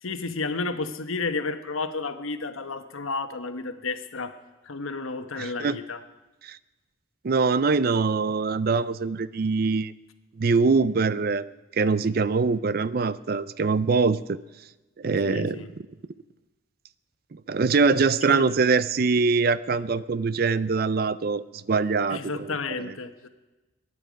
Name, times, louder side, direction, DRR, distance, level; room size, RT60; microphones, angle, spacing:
voice 1, 0.0-4.4 4.6-6.0 15.2-15.7 18.2-18.4 22.1-23.3, left 3 dB, 85° left, 9 dB, 1.1 m, -32 dB
voice 2, 5.4-5.8 6.4-6.6 7.2-9.9 10.4-11.5 11.7-14.4 15.0-15.6 17.3-22.5, right 4 dB, 45° right, 17 dB, 0.4 m, -23 dB
22.5 x 10.0 x 5.1 m, 1.1 s
head